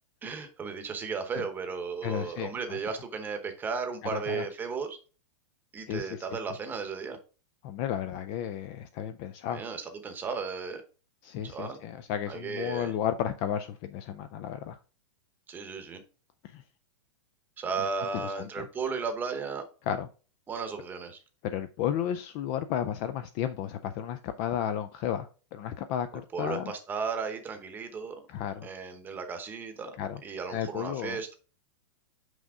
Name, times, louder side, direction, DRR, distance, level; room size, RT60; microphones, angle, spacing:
voice 1, 0.2-5.0 5.7-7.2 9.5-10.8 11.4-11.8 12.3-12.9 15.5-16.0 17.6-19.6 20.5-21.2 26.3-28.2 28.6-29.9 30.2-31.3, right 5 dB, 10° right, 7 dB, 0.9 m, -35 dB
voice 2, 2.0-2.8 4.1-4.4 5.9-6.3 7.6-9.6 11.2-14.8 16.4-16.6 18.1-18.7 19.9-20.1 21.4-26.7 28.3-28.7 30.0-30.2 30.5-31.2, left 9 dB, 25° left, 10 dB, 0.3 m, -33 dB
6.1 x 5.3 x 3.5 m, 0.35 s
supercardioid pair, 165°, 15 cm